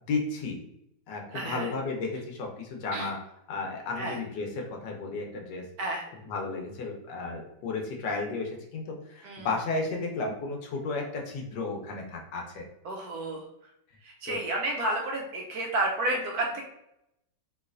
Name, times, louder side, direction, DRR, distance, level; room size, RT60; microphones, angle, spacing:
voice 1, 0.1-0.6 1.1-3.2 3.5-5.7 6.3-12.7 14.3-14.4, left 3 dB, 75° left, 1 dB, 1.3 m, -33 dB
voice 2, 1.3-1.7 2.9-3.1 4.0-4.2 5.8-6.0 9.2-9.5 12.8-13.5 14.0-16.6, right 2 dB, 70° right, 0 dB, 1.0 m, -31 dB
3.1 x 3.1 x 2.4 m, 0.81 s
omnidirectional pair, 1.9 m